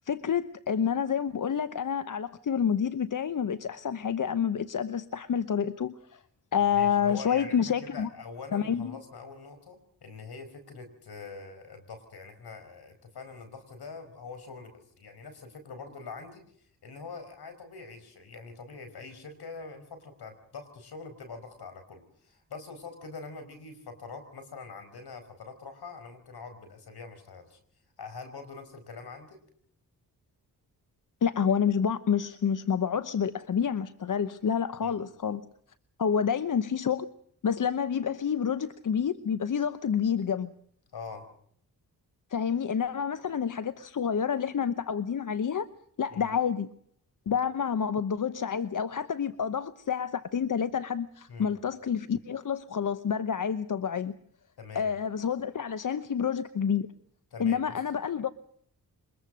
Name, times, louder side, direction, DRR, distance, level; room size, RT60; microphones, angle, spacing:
voice 1, 0.1-6.2 6.5-8.1 8.5-9.0 31.2-35.4 36.0-37.1 37.4-40.5 42.3-45.7 46.0-46.7 47.3-54.1 54.7-56.9 57.4-58.3, left 7 dB, 50° left, 1.0 m, -28 dB
voice 2, 6.5-16.4 16.8-27.6 28.0-29.4 34.8-34.9 40.9-41.2 46.1-46.3 51.3-51.5 54.6-54.9 57.3-57.8, left 4 dB, 75° left, 5.1 m, -44 dB
24.5 x 21.0 x 6.4 m
cardioid pair, 60°, 39 cm